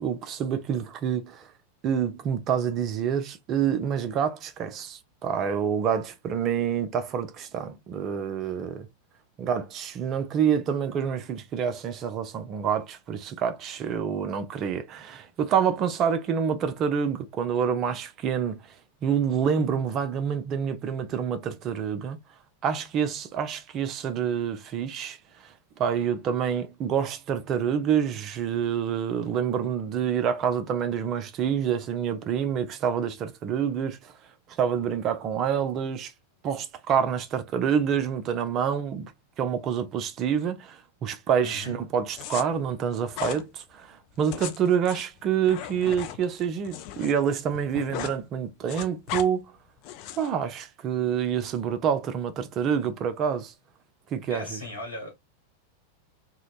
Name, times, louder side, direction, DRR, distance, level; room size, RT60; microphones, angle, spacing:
voice 1, 0.0-1.5 1.8-8.9 9.4-18.6 19.0-22.2 22.6-34.1 34.6-36.1 36.4-39.1 39.4-49.5 50.2-53.5 54.1-54.6, right 8 dB, 35° right, 0.4 m, -27 dB
voice 2, 41.4-41.8 54.3-55.1, left 2 dB, 80° left, 1.2 m, -37 dB
sound 1, 42.1-42.4 43.1-43.4 44.2-47.1 47.4-48.2 48.5-49.3 49.8-50.3, left 11 dB, 45° left, 0.4 m, -36 dB
2.8 x 2.0 x 2.4 m
figure-of-eight pair, 90°, 0 cm